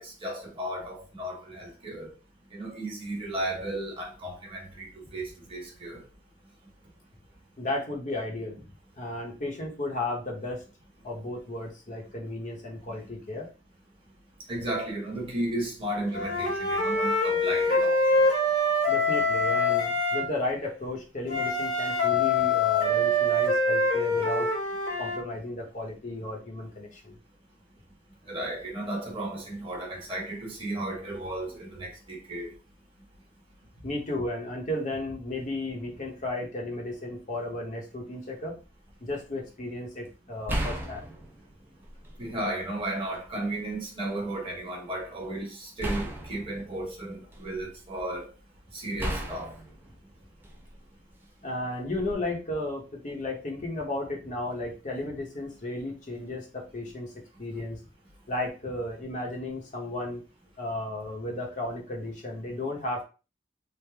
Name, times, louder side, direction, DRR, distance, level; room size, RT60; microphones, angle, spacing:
voice 1, 0.0-2.1 2.5-6.0 14.5-18.0 28.3-32.5 42.2-48.3 48.7-49.5, right 1 dB, 30° right, 1.3 m, -34 dB
voice 2, 7.6-8.6 9.0-10.6 11.0-13.5 18.9-24.5 25.0-27.1 33.8-38.6 39.0-41.0 51.4-57.1 57.4-57.8 58.3-60.2 60.6-63.0, left 2 dB, 40° left, 0.8 m, -34 dB
Wind instrument woodwind instrument, 16.1-20.3 21.3-25.2, left 2 dB, 75° left, 1.4 m, -25 dB
sound 1, 38.6-38.9 40.5-42.3 42.8-43.7 45.8-47.8 49.0-50.9 51.9-52.2, right 1 dB, 10° right, 0.5 m, -36 dB
3.3 x 2.0 x 3.3 m
head